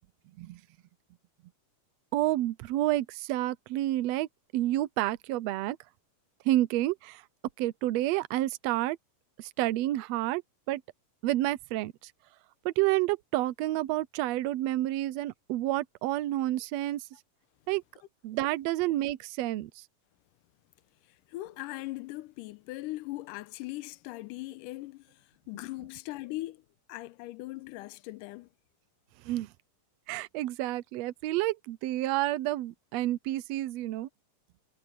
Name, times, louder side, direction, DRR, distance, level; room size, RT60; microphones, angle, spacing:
voice 1, 2.1-4.3 4.5-5.8 6.4-7.2 7.6-9.0 9.4-10.4 10.7-10.8 11.2-12.1 12.6-17.1 17.7-17.8 18.2-19.8 29.2-29.5 30.1-34.1, right 15 dB, 90° right, 1.5 m, -29 dB
voice 2, 21.0-26.6 26.9-28.5, left 18 dB, 90° left, 2.2 m, -40 dB
omnidirectional pair, 3.7 m